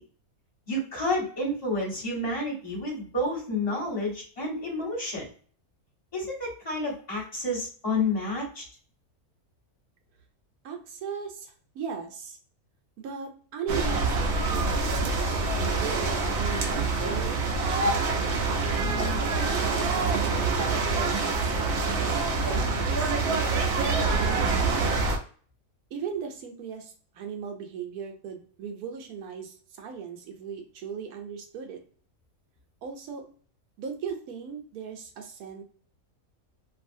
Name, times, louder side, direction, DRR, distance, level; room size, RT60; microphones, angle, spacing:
voice 1, 0.7-5.3 6.1-8.6, left 1 dB, 25° left, -4 dB, 1.1 m, -30 dB
voice 2, 10.6-12.4 13.0-17.9 18.6-23.5 23.7-25.0 25.9-31.8 32.8-33.3 33.8-35.6, right 6 dB, 80° right, 3 dB, 1.1 m, -38 dB
sound 1, 13.7-25.2, right 3 dB, 60° right, 0.7 m, -26 dB
2.7 x 2.4 x 2.6 m, 0.43 s
omnidirectional pair, 1.6 m